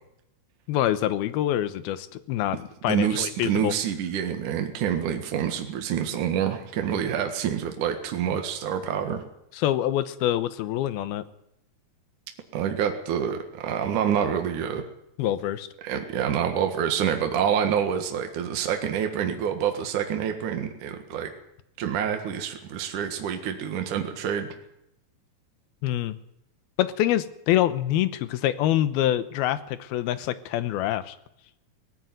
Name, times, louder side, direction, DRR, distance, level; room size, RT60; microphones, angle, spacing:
voice 1, 0.7-3.7 9.6-11.2 15.2-15.7 25.8-26.2 26.8-31.2, left 12 dB, 80° left, 14 dB, 2.8 m, -25 dB
voice 2, 2.8-9.2 12.5-14.8 15.8-21.3 21.8-24.5, right 8 dB, 60° right, 5 dB, 2.9 m, -27 dB
19.0 x 16.0 x 9.3 m, 0.80 s
omnidirectional pair, 4.4 m